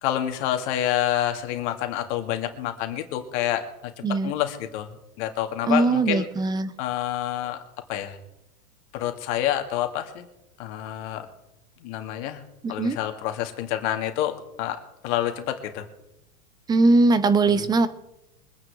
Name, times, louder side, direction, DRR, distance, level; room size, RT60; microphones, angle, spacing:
voice 1, 0.0-3.9 4.2-4.9 5.2-6.3 6.8-7.6 7.9-8.2 8.9-10.3 10.6-11.3 11.8-12.4 12.7-15.9 17.5-17.7, left 12 dB, 50° left, 5 dB, 2.2 m, -28 dB
voice 2, 5.7-6.7 12.6-13.0 16.7-17.9, right 3 dB, 10° right, 14 dB, 0.5 m, -20 dB
24.0 x 9.5 x 3.6 m, 0.92 s
hypercardioid pair, 115°, 45 cm